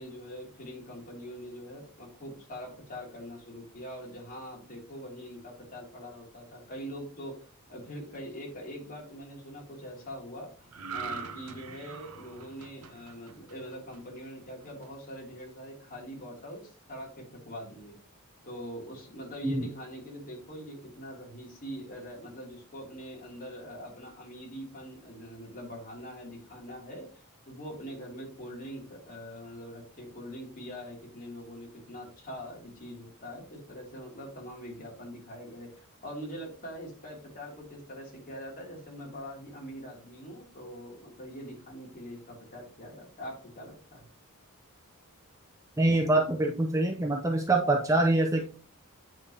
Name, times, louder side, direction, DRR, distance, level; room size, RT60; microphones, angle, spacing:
voice 1, 0.0-7.4 7.7-18.0 18.4-27.1 27.5-44.0, equal, 40° left, -2 dB, 2.9 m, -43 dB
sound 1, 10.7-14.2 14.6-14.9, right 6 dB, 80° right, 0.8 m, -42 dB
voice 2, 45.8-48.5, right 2 dB, 15° right, 2 dB, 0.7 m, -25 dB
8.8 x 5.2 x 2.9 m, 0.39 s
head